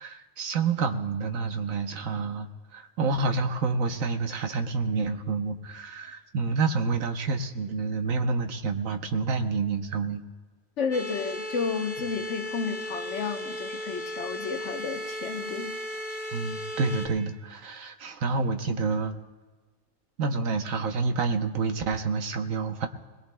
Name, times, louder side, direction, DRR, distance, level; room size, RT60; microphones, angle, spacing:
voice 1, 0.0-10.2 16.3-19.2 20.2-22.9, right 4 dB, 70° right, 7 dB, 1.2 m, -28 dB
voice 2, 10.8-15.8, left 5 dB, 60° left, 6 dB, 1.1 m, -32 dB
sound 1, 10.9-17.1, equal, 55° right, 3.4 m, -36 dB
21.0 x 21.0 x 2.2 m, 1.3 s
omnidirectional pair, 1.5 m